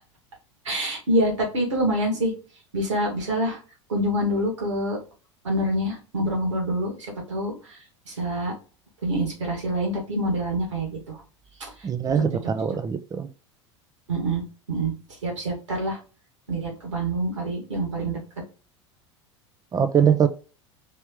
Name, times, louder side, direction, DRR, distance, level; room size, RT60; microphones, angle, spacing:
voice 1, 0.7-2.3 2.7-3.6 3.9-5.0 5.4-7.5 8.1-8.5 9.0-11.2 11.6-11.7 14.1-14.4 14.7-14.9 15.2-16.0 16.5-18.2, right 1 dB, 80° right, 2.0 m, -26 dB
voice 2, 11.8-13.3 19.7-20.3, right 7 dB, 25° right, 0.6 m, -22 dB
4.8 x 3.3 x 3.0 m
hypercardioid pair, 80°, 15 cm